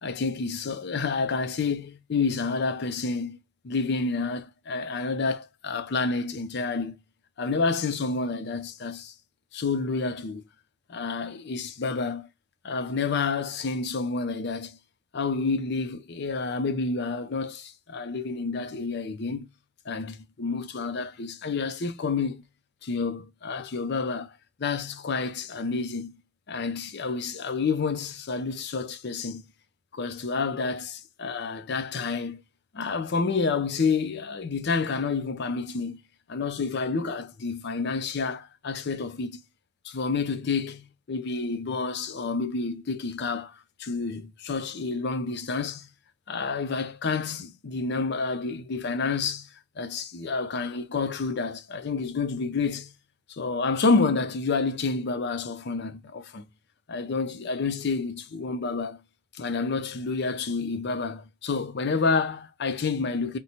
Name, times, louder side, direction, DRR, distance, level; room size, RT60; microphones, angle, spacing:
voice 1, 0.0-3.4 3.6-7.0 7.4-9.1 9.5-10.4 10.9-12.3 12.6-14.8 15.1-19.5 19.9-22.4 22.8-24.3 24.6-26.2 26.5-29.4 29.9-32.4 32.7-36.0 36.3-39.4 39.8-43.5 43.8-45.9 46.3-49.5 49.8-52.9 53.3-56.5 56.9-59.0 59.3-63.4, left 4 dB, 55° left, 0.5 m, -29 dB
2.9 x 2.2 x 4.0 m
head